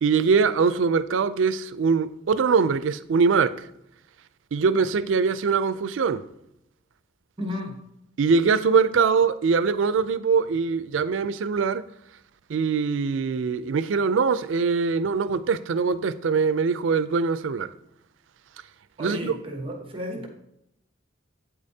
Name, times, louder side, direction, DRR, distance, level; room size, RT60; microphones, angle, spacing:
voice 1, 0.0-3.7 4.5-6.2 8.2-11.8 12.5-17.7 19.0-19.3, right 5 dB, 80° right, 0.4 m, -22 dB
voice 2, 7.4-7.8 19.0-20.3, left 1 dB, 30° right, 1.1 m, -33 dB
8.5 x 8.5 x 2.7 m
head